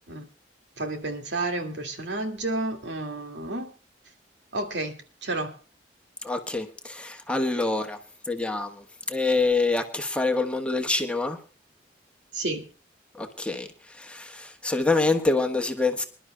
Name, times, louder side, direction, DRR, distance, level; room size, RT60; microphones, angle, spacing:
voice 1, 0.8-3.7 4.5-5.6 12.3-12.7, right 2 dB, 85° right, 2.2 m, -31 dB
voice 2, 6.2-8.0 8.3-11.4 13.1-13.7 14.0-16.0, left 3 dB, 5° left, 1.2 m, -26 dB
26.5 x 11.5 x 2.2 m
head